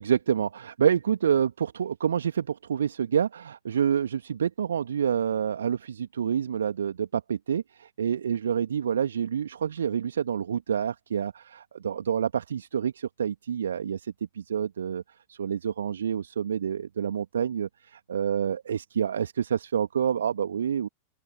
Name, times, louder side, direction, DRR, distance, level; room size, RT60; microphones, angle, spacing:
voice 1, 0.0-15.0 15.3-20.9, right 8 dB, 65° right, 2.1 m, -28 dB
open air
figure-of-eight pair, 90°, 0 cm